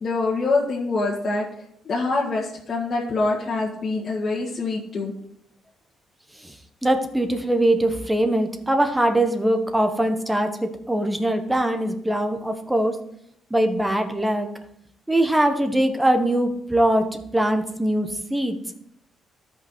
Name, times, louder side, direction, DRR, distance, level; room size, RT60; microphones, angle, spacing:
voice 1, 0.0-1.5 1.8-5.1, left 3 dB, 45° left, -5 dB, 1.9 m, -25 dB
voice 2, 6.8-13.0 13.5-14.5 15.1-17.1 17.3-18.6, right 1 dB, 10° right, 6 dB, 1.3 m, -22 dB
13.0 x 5.7 x 4.5 m, 0.72 s
cardioid pair, 90°, 0 cm